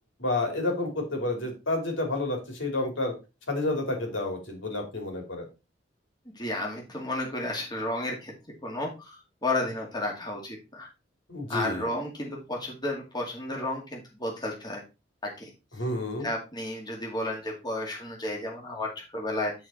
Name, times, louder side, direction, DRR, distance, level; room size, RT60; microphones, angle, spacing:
voice 1, 0.2-3.1 3.5-5.5 11.3-11.9 15.8-16.3, left 2 dB, 80° left, 2 dB, 3.3 m, -30 dB
voice 2, 6.3-8.3 8.6-10.9 11.5-14.8 15.2-15.5 16.2-19.5, left 1 dB, 20° left, -1 dB, 2.2 m, -32 dB
10.0 x 4.4 x 4.5 m, 0.28 s
head